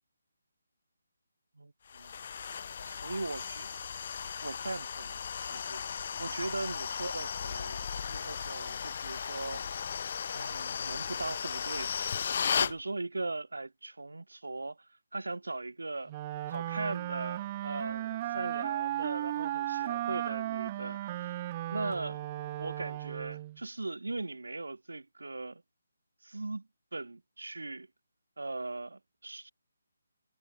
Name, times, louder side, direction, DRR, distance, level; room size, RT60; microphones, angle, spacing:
voice 1, 1.6-2.2 2.8-3.7 4.4-9.6 10.3-11.9 12.6-16.1 16.5-22.2 22.6-25.6 26.2-27.9 28.4-29.5, right 2 dB, 70° right, 1.1 m, -39 dB
sound 1, 1.9-12.8, left 7 dB, 45° left, 1.8 m, -36 dB
Wind instrument woodwind instrument, 16.1-23.6, right 14 dB, 25° right, 1.4 m, -35 dB
figure-of-eight pair, 150°, 0 cm